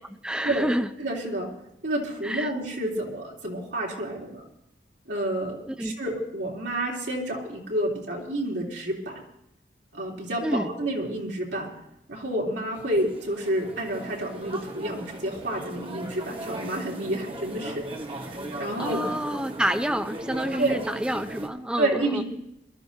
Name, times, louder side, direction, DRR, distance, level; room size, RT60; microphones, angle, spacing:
voice 1, 0.1-0.9 2.2-2.5 5.7-6.0 10.4-10.7 18.8-22.2, right 1 dB, 5° right, 8 dB, 0.5 m, -28 dB
voice 2, 1.0-1.5 1.8-4.4 5.1-9.2 9.9-11.7 12.1-17.9 18.2-19.0 20.6-20.8 21.8-22.2, right 1 dB, 85° right, -2 dB, 3.2 m, -29 dB
sound 1, 12.7-21.5, right 1 dB, 30° right, 1.2 m, -38 dB
23.5 x 12.5 x 2.8 m, 0.82 s
head